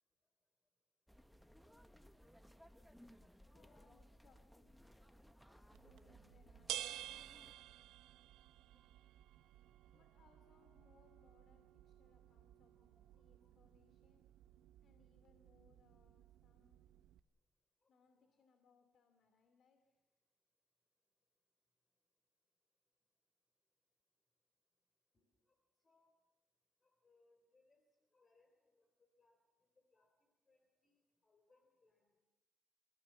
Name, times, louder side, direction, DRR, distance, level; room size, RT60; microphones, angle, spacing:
sound 1, 1.1-7.5, equal, ahead, 0.9 m, -63 dB
voice 1, 3.5-5.2 5.7-7.9 9.9-14.2 14.8-16.9 17.9-20.2, left 5 dB, 60° left, 7 dB, 2.4 m, -74 dB
sound 2, 5.7-17.2, right 13 dB, 90° right, 0.7 m, -53 dB
voice 2, 13.1-13.6 17.8-18.4 25.1-25.3 25.8-26.1 26.8-27.8 28.1-29.4 29.9-30.1 30.5-32.2, left 3 dB, 30° left, 5 dB, 3.3 m, -77 dB
28.0 x 16.0 x 7.3 m, 1.2 s
cardioid pair, 90°, 0 cm